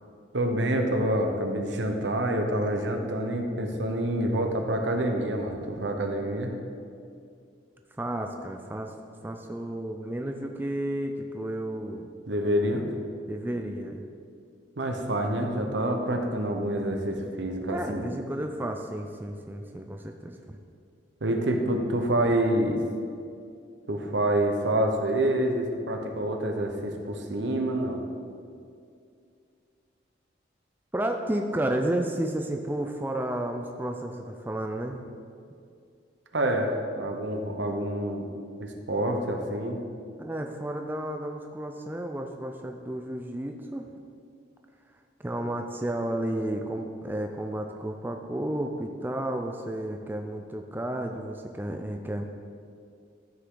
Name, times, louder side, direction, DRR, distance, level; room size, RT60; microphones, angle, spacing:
voice 1, 0.3-6.5 12.3-12.8 14.8-18.1 21.2-22.8 23.9-28.0 36.3-38.3 38.6-39.8, right 1 dB, 75° right, 4 dB, 1.0 m, -27 dB
voice 2, 8.0-8.9 9.2-12.1 13.3-14.0 17.7-20.6 30.9-35.0 40.2-43.9 45.2-52.2, right 1 dB, 10° right, 4 dB, 0.4 m, -32 dB
13.0 x 5.9 x 3.8 m, 2.4 s
head